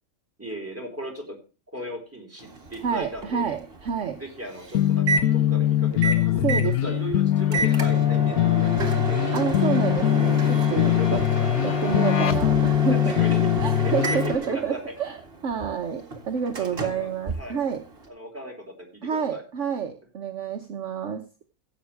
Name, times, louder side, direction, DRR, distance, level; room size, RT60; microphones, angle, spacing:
voice 1, 0.4-1.4 1.7-3.5 4.2-9.3 11.0-11.9 12.9-13.5 13.8-14.8 16.7-17.1 17.4-17.6 18.1-19.4, equal, 10° right, 0 dB, 4.3 m, -37 dB
Microwave oven, 2.4-18.1, right 3 dB, 40° right, 2.1 m, -31 dB
voice 2, 2.8-4.2 6.4-7.0 9.3-11.2 11.6-13.1 13.6-15.2 15.4-17.8 19.0-21.2, right 7 dB, 55° right, 5 dB, 1.3 m, -29 dB
sound 1, 4.7-14.3, left 13 dB, 90° left, 1.2 m, -22 dB
sound 2, 7.3-13.2, left 6 dB, 55° left, 1.2 m, -36 dB
15.5 x 8.0 x 3.3 m, 0.33 s
omnidirectional pair, 1.5 m